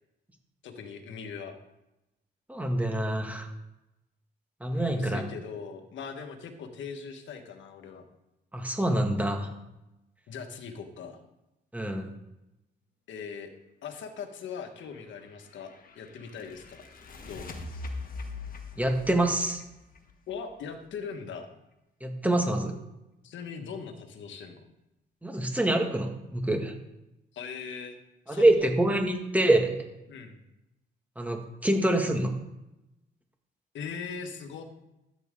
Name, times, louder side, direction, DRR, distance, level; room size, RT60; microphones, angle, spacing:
voice 1, 0.6-1.6 4.7-8.0 10.3-11.2 13.1-13.5 13.8-16.8 17.2-17.5 20.3-21.5 23.2-24.6 27.3-28.0 28.3-28.7 30.1-30.4 33.7-34.6, left 6 dB, 70° left, 6 dB, 1.6 m, -40 dB
voice 2, 2.5-3.5 4.6-5.2 8.5-9.5 11.7-12.1 18.8-19.6 22.0-22.8 25.2-26.7 28.3-29.8 31.2-32.3, right 1 dB, 5° right, 3 dB, 2.0 m, -26 dB
sound 1, 14.9-20.7, left 3 dB, 45° left, 1.7 m, -42 dB
13.0 x 9.0 x 3.8 m, 0.93 s
cardioid pair, 90°, 20 cm